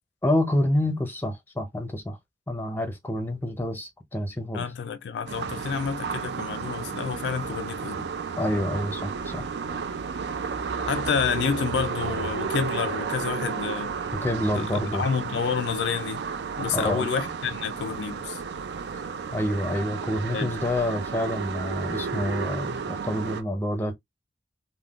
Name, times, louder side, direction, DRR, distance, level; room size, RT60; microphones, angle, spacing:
voice 1, 0.2-2.2 2.5-4.7 8.4-9.5 14.2-15.0 16.7-17.1 19.3-24.0, left 1 dB, 10° left, 0.5 m, -27 dB
voice 2, 4.5-8.1 10.9-13.9 14.5-14.7 14.9-16.2 16.6-18.4 20.3-20.5, left 6 dB, 80° left, 0.4 m, -29 dB
sound 1, 5.3-23.4, right 5 dB, 75° right, 0.4 m, -32 dB
3.5 x 2.2 x 2.3 m
head